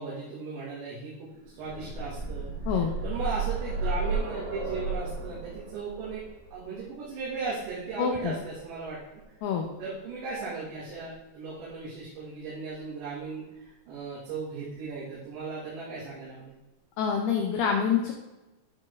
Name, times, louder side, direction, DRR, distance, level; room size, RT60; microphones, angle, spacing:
voice 1, 0.0-2.5 3.0-6.2 6.5-9.0 9.8-16.5, right 4 dB, 70° right, -10 dB, 4.2 m, -37 dB
sound 1, 1.4-9.2 10.3-10.4 10.8-10.9, right 3 dB, 55° right, 2.7 m, -34 dB
voice 2, 8.0-8.3 9.4-9.7 17.0-18.1, left 7 dB, 85° left, 2 dB, 2.3 m, -26 dB
12.0 x 4.5 x 3.5 m, 1.0 s
omnidirectional pair, 5.5 m